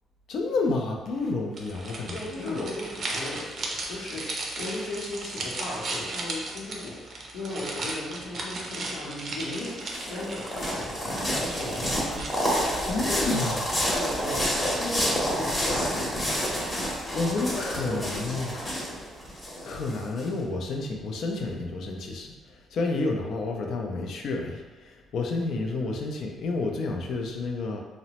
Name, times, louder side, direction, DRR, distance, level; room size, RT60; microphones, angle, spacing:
voice 1, 0.3-2.6 12.8-13.6 17.1-18.5 19.6-27.8, left 3 dB, 65° left, 2 dB, 0.4 m, -30 dB
sound 1, 1.5-12.7, right 2 dB, 50° right, 0.5 m, -36 dB
voice 2, 2.0-12.4 12.9-14.5 14.8-19.0, left 1 dB, 85° left, -5 dB, 0.8 m, -37 dB
sound 2, 9.4-20.2, equal, 20° left, 0.8 m, -29 dB
2.9 x 2.0 x 2.9 m, 1.2 s
cardioid pair, 105°, 0 cm